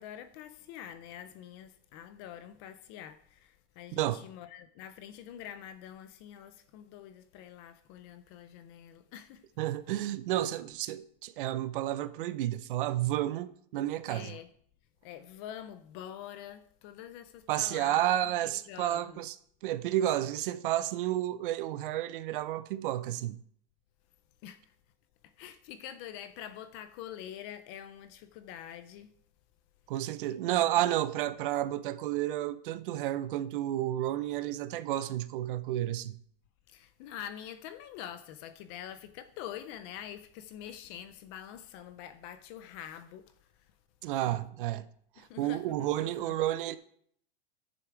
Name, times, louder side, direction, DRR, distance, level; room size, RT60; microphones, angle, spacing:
voice 1, 0.0-9.4 14.1-14.5 15.0-18.0 18.7-19.2 24.4-24.8 25.2-29.1 30.3-30.9 36.7-43.7 45.2-46.3, left 10 dB, 25° left, 0.4 m, -46 dB
voice 2, 9.6-14.4 17.5-19.3 19.6-23.4 29.9-36.2 44.0-44.9 45.2-46.8, right 13 dB, 60° right, 0.7 m, -31 dB
9.4 x 7.0 x 4.7 m
supercardioid pair, 160°, 30 cm